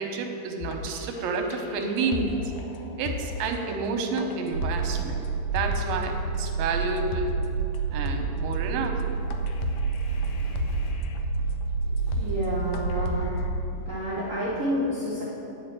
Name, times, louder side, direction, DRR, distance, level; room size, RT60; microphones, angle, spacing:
voice 1, 0.0-2.4 3.0-5.2 5.5-7.4 7.9-9.0, right 4 dB, 90° right, 4 dB, 2.6 m, -29 dB
sound 1, 0.6-6.1 6.5-6.6 7.0-7.5 7.7-7.8 8.1-8.5 9.0-9.1 9.3-11.2 11.6-11.7 12.0-12.5 12.7-13.5, left 5 dB, 80° left, 2.3 m, -36 dB
sound 2, 4.5-13.6, right 5 dB, 55° left, 2.6 m, -29 dB
voice 2, 11.8-13.3 13.8-15.2, equal, 55° right, -9 dB, 0.8 m, -30 dB
10.0 x 4.9 x 7.5 m, 2.8 s
omnidirectional pair, 4.0 m